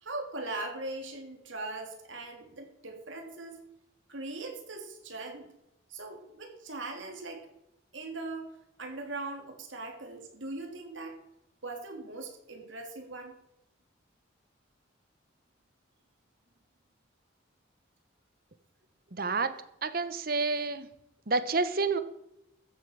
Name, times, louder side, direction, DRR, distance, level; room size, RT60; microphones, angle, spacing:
voice 1, 0.0-3.6 4.1-5.5 5.9-7.5 7.9-8.5 8.8-11.2 11.6-13.3, right 2 dB, 80° right, 3 dB, 3.2 m, -40 dB
voice 2, 19.1-19.5 19.8-20.9 21.3-22.0, right 3 dB, 50° right, 12 dB, 1.1 m, -29 dB
14.0 x 8.3 x 7.4 m, 0.84 s
head